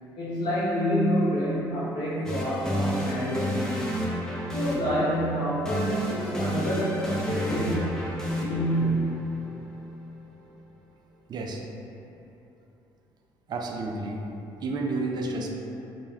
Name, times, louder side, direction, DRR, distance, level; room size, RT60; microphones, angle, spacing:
voice 1, 0.2-3.8 4.5-8.0 8.4-9.3, equal, 60° left, -10 dB, 0.6 m, -27 dB
sound 1, 2.2-10.2, equal, 5° left, 0.5 m, -31 dB
voice 2, 11.3-11.6 13.5-14.2 14.6-15.5, right 3 dB, 50° right, 1 dB, 0.4 m, -30 dB
2.2 x 2.1 x 3.2 m, 2.9 s
supercardioid pair, 65°, 10 cm